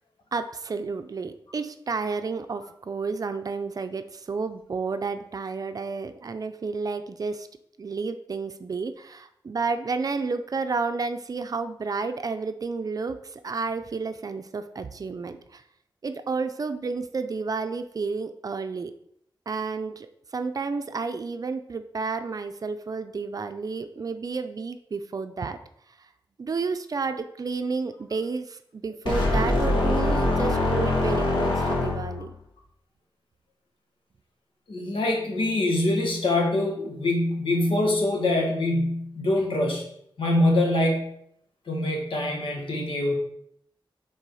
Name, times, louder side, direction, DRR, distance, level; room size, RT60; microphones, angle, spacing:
voice 1, 0.3-7.5 7.8-15.6 16.0-18.9 19.5-20.1 20.3-25.6 26.4-32.3, right 4 dB, 45° right, 9 dB, 0.5 m, -31 dB
sound 1, 29.1-32.3, left 2 dB, 70° left, 1.8 m, -23 dB
voice 2, 34.7-39.8 40.2-41.1 41.7-43.1, left 1 dB, 90° left, 1 dB, 1.5 m, -24 dB
6.6 x 3.9 x 4.8 m, 0.72 s
wide cardioid pair, 135°, 9 cm